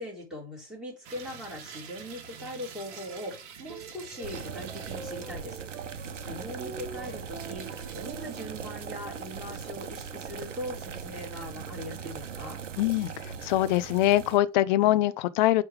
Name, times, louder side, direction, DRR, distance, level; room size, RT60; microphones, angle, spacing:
voice 1, 0.0-5.6 5.9-12.6, left 1 dB, ahead, 4.2 m, -40 dB
sound 1, 1.0-5.8 6.2-6.3 7.3-9.4 9.9-11.2 11.6-12.8 13.2-13.7 14.0-14.1, right 7 dB, 35° right, 2.0 m, -48 dB
sound 2, 3.7-12.3, right 4 dB, 20° right, 3.2 m, -47 dB
sound 3, 4.2-14.4, right 6 dB, 75° right, 1.1 m, -40 dB
voice 2, 12.8-13.1 13.4-15.6, left 15 dB, 40° left, 0.6 m, -23 dB
8.7 x 3.5 x 4.8 m
figure-of-eight pair, 110°, 37 cm